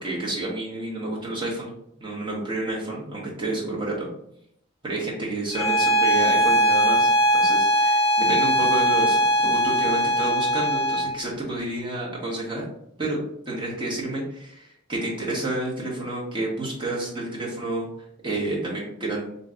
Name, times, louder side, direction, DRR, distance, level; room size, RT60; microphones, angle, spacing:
voice 1, 0.0-1.7 2.0-4.1 4.8-12.6 13.0-13.2 13.5-17.9 18.2-19.2, right 2 dB, 25° right, -5 dB, 1.0 m, -30 dB
Bowed string instrument, 5.5-11.1, equal, 30° left, 1.1 m, -20 dB
3.0 x 2.7 x 3.6 m, 0.73 s
head